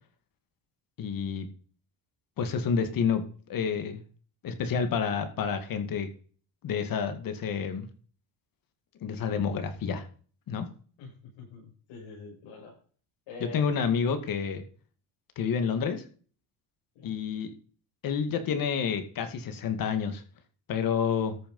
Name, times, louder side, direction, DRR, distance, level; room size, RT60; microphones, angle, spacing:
voice 1, 1.0-1.5 2.4-3.2 3.5-4.0 4.4-6.1 6.6-7.9 9.0-10.1 10.5-10.7 13.5-14.6 15.4-16.0 17.0-17.5 18.0-20.2 20.7-21.3, left 6 dB, 50° left, 8 dB, 2.2 m, -29 dB
voice 2, 11.0-12.8 13.3-13.7 17.0-17.2, left 3 dB, 85° left, -4 dB, 7.2 m, -45 dB
13.5 x 6.8 x 5.4 m, 0.42 s
cardioid pair, 160°, 44 cm